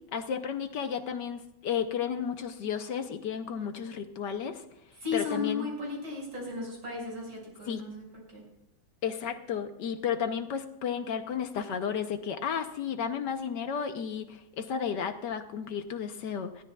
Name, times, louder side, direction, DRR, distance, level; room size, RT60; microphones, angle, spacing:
voice 1, 0.1-4.6 5.1-5.7 7.7-7.8 9.0-16.6, left 7 dB, 65° left, 7 dB, 1.4 m, -33 dB
voice 2, 5.0-8.0 8.3-8.5, left 4 dB, 85° right, -2 dB, 6.2 m, -35 dB
20.5 x 15.0 x 2.3 m, 0.85 s
omnidirectional pair, 2.2 m